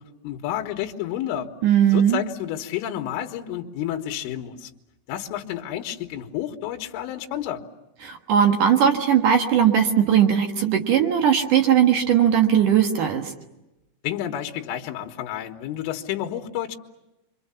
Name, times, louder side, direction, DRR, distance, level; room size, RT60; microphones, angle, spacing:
voice 1, 0.0-1.5 1.9-4.7 5.1-7.6 14.0-16.8, left 11 dB, 80° left, 3 dB, 3.8 m, -30 dB
voice 2, 1.6-2.2 8.0-13.3, right 9 dB, 70° right, 4 dB, 2.0 m, -19 dB
29.5 x 24.0 x 7.1 m, 0.99 s
omnidirectional pair, 5.9 m